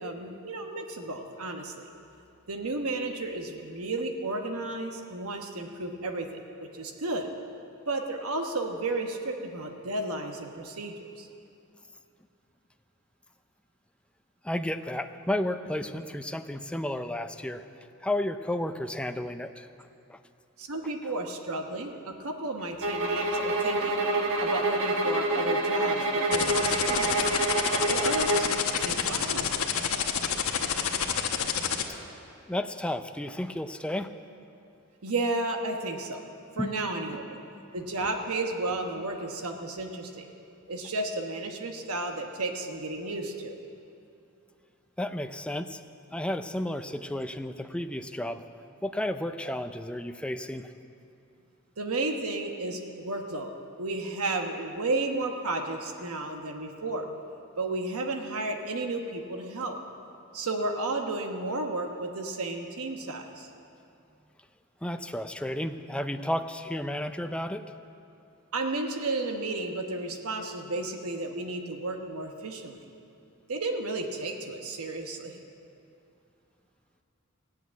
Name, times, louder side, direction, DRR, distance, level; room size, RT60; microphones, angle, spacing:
voice 1, 0.0-1.9 2.5-6.3 6.6-7.3 7.9-11.3 20.6-24.1 24.4-27.3 27.9-28.5 28.7-29.6 35.0-36.2 36.6-37.4 37.7-40.3 40.7-43.5 51.8-53.5 53.8-57.1 57.6-59.8 60.3-63.5 68.5-72.8 73.5-75.4, right 2 dB, 85° right, 4 dB, 1.1 m, -33 dB
voice 2, 14.4-17.6 18.0-19.7 20.1-20.2 32.5-34.1 36.6-36.7 37.0-37.2 37.5-37.7 45.0-45.8 46.1-48.4 48.8-50.7 64.8-67.6, left 1 dB, 5° left, 8 dB, 0.4 m, -32 dB
sound 1, 22.8-28.6, right 2 dB, 65° right, 1.3 m, -27 dB
sound 2, 26.3-31.8, left 7 dB, 70° left, 1.1 m, -27 dB
16.0 x 8.1 x 9.3 m, 2.6 s
head